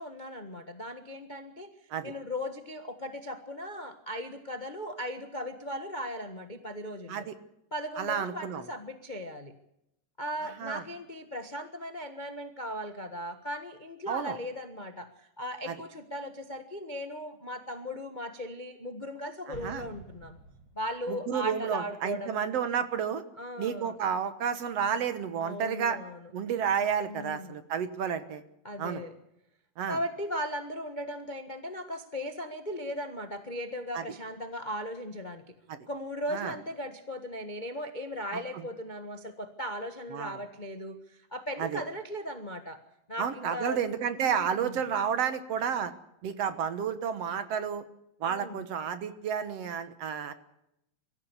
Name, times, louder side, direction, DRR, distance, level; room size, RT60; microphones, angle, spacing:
voice 1, 0.0-1.7 2.0-7.3 7.7-9.5 10.2-20.4 20.7-22.5 23.4-24.0 25.4-26.2 27.1-27.6 28.6-29.1 29.9-35.5 35.9-42.8 43.1-43.8 44.2-44.8 48.3-48.6, equal, 85° left, 7 dB, 0.4 m, -37 dB
voice 2, 8.0-8.6 10.6-10.8 14.1-14.4 15.7-15.8 19.5-19.9 21.1-23.2 23.6-26.0 26.3-28.4 28.8-29.0 29.8-30.0 33.9-34.0 35.7-35.8 36.3-36.5 38.3-38.4 40.1-40.4 41.6-41.8 43.2-45.9 46.2-47.8 48.2-50.3, right 7 dB, 60° right, 12 dB, 2.0 m, -31 dB
Explosion, 19.5-21.2, right 1 dB, 30° right, 5.2 m, -48 dB
24.0 x 14.5 x 8.2 m, 0.81 s
omnidirectional pair, 3.7 m